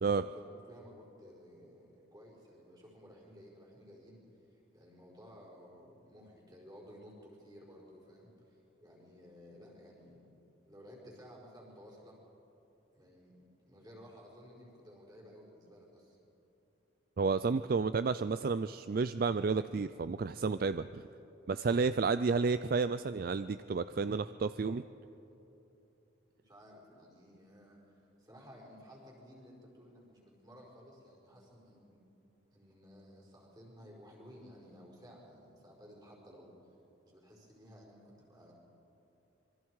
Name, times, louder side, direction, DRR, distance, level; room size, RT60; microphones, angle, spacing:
voice 1, 0.0-10.3 10.6-12.2 12.9-16.2 26.4-32.0 32.5-36.5 37.0-38.5, equal, 20° right, -2 dB, 4.8 m, -55 dB
voice 2, 17.2-21.0 21.5-24.8, right 4 dB, 50° right, 13 dB, 0.4 m, -31 dB
26.0 x 23.5 x 4.8 m, 3.0 s
head